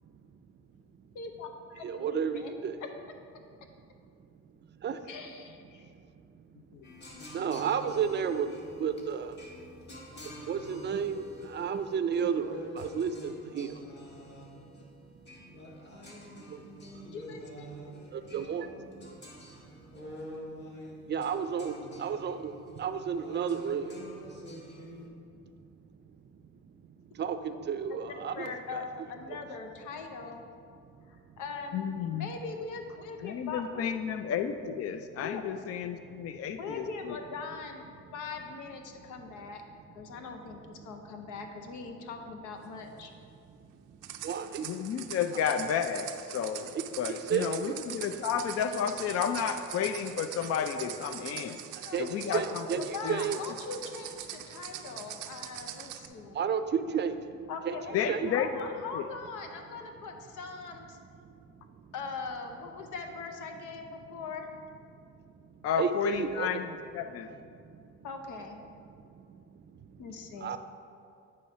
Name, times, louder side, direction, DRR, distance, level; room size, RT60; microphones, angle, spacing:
voice 1, 1.1-2.6 5.1-5.9 17.1-17.9 27.9-30.4 31.1-31.9 32.1-33.9 35.2-35.4 36.6-39.6 40.0-43.1 51.8-52.0 52.3-52.4 52.8-56.4 57.5-61.0 61.9-64.5 68.0-68.6 70.0-70.6, left 4 dB, 85° left, 4 dB, 0.8 m, -41 dB
voice 2, 1.8-2.8 4.7-5.1 5.7-5.9 6.3-6.4 7.3-8.5 8.8-9.5 10.2-13.9 14.6-14.7 15.1-15.2 16.5-17.0 18.1-18.8 20.0-20.5 21.0-24.0 25.6-25.7 26.3-26.4 26.9-28.8 29.3-29.4 36.0-36.4 43.9-44.7 46.7-46.8 47.3-47.8 51.7-52.1 52.3-53.4 56.0-57.8 58.1-58.3 61.5-61.9 65.1-66.6 67.5-68.0 69.1-70.0 70.4-70.6, right 7 dB, 35° right, 10 dB, 0.5 m, -33 dB
sound 1, 6.8-25.1, equal, 35° left, 1.4 m, -47 dB
voice 3, 31.7-32.3 33.2-37.2 44.6-46.7 47.0-51.6 52.0-53.2 53.5-53.6 57.9-58.7 58.9-59.0 65.6-67.3, left 8 dB, 50° left, 8 dB, 0.4 m, -32 dB
sound 2, 44.0-56.1, right 11 dB, 90° right, 0.5 m, -43 dB
9.3 x 3.1 x 5.6 m, 2.4 s
cardioid pair, 90°, 30 cm